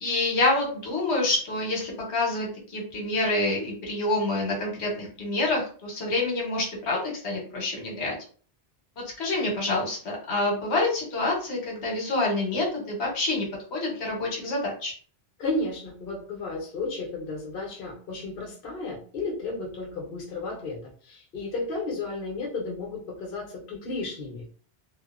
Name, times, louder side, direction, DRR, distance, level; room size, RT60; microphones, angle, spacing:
voice 1, 0.0-8.2 9.2-13.4 13.7-14.9, left 2 dB, 80° left, -1 dB, 1.1 m, -27 dB
voice 2, 15.4-20.8 21.0-24.4, left 3 dB, 60° left, -1 dB, 0.9 m, -33 dB
2.5 x 2.1 x 2.3 m, 0.42 s
omnidirectional pair, 1.1 m